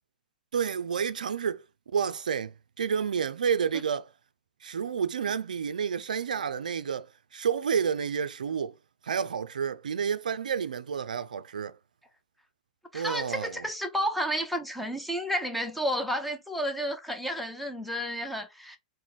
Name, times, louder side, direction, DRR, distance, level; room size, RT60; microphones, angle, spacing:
voice 1, 0.5-1.6 1.9-4.1 4.6-8.7 9.0-11.8 12.9-13.6, right 7 dB, 80° right, 0.3 m, -30 dB
voice 2, 12.9-18.8, equal, ahead, 0.7 m, -31 dB
3.0 x 2.1 x 4.0 m
hypercardioid pair, 105°, 4 cm